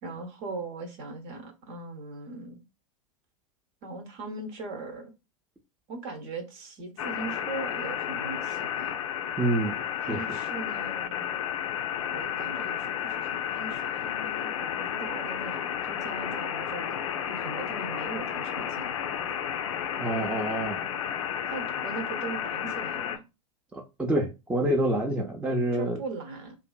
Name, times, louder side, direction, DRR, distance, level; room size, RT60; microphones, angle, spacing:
voice 1, 0.0-2.6 3.8-5.1 5.9-9.0 10.1-11.4 12.1-16.9 17.3-18.9 21.4-23.2 25.7-26.6, right 3 dB, 45° right, 0.8 m, -39 dB
sound 1, 7.0-23.2, left 9 dB, 65° left, 0.4 m, -32 dB
voice 2, 9.4-9.7 10.1-10.4 20.0-20.8 23.7-26.0, right 1 dB, 5° right, 0.5 m, -27 dB
2.6 x 2.5 x 2.2 m
figure-of-eight pair, 90°, 18 cm